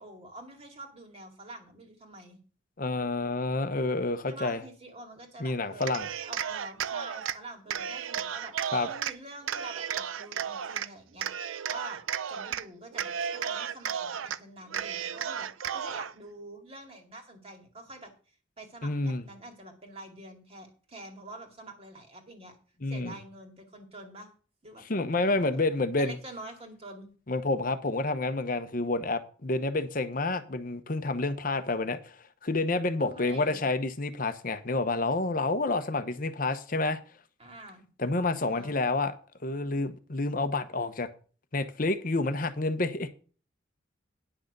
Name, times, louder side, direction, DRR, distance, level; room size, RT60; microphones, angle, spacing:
voice 1, 0.0-2.4 4.3-11.3 11.7-12.0 12.3-18.1 18.6-22.6 22.9-24.3 24.6-24.8 25.3-25.6 26.0-27.1 33.0-33.6 37.4-37.9 38.3-38.8, right 2 dB, 30° right, 2.3 m, -46 dB
voice 2, 2.8-4.6 5.4-6.1 8.7-8.9 18.8-19.2 22.8-23.2 24.9-26.2 27.3-37.0 38.0-39.1 39.4-41.1 41.5-43.1, left 2 dB, 45° left, 0.9 m, -29 dB
Cheering, 5.7-7.4 7.7-9.1 9.5-10.9 11.2-12.6 12.9-14.4 14.7-16.1, right 8 dB, 80° right, 0.5 m, -34 dB
10.0 x 6.2 x 6.6 m
head